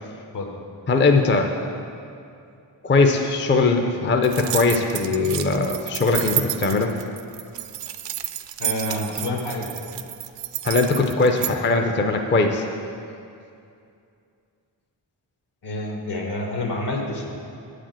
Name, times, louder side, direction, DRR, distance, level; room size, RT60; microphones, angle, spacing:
voice 1, 0.9-1.5 2.8-6.9 10.6-12.6, left 3 dB, 25° left, 4 dB, 0.5 m, -20 dB
sound 1, 4.2-11.5, right 12 dB, 75° right, 0.5 m, -30 dB
voice 2, 8.6-9.7 15.6-17.2, left 1 dB, 70° left, 1 dB, 1.5 m, -28 dB
8.3 x 5.0 x 7.5 m, 2.5 s
wide cardioid pair, 105°, 43 cm